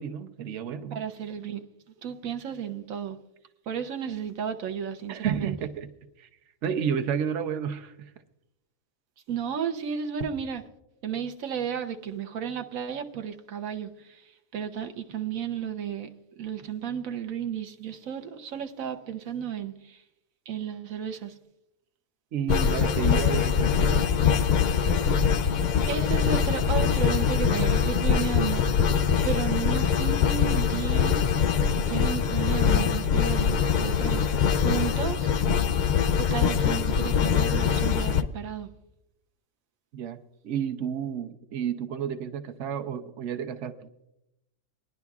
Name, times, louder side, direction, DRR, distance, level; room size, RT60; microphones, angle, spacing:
voice 1, 0.0-1.0 5.1-5.9 6.2-6.3 6.6-7.9 22.3-24.0 39.9-40.2 40.4-43.9, right 8 dB, 65° right, 1.1 m, -31 dB
voice 2, 0.9-1.6 2.0-3.2 3.7-5.6 9.3-10.6 11.0-16.1 16.4-20.0 20.5-21.4 25.9-31.3 31.7-35.3 36.2-38.7, right 8 dB, 90° right, 1.2 m, -33 dB
sound 1, 22.5-38.2, left 7 dB, 70° left, 0.4 m, -23 dB
21.5 x 11.0 x 2.4 m
omnidirectional pair, 1.4 m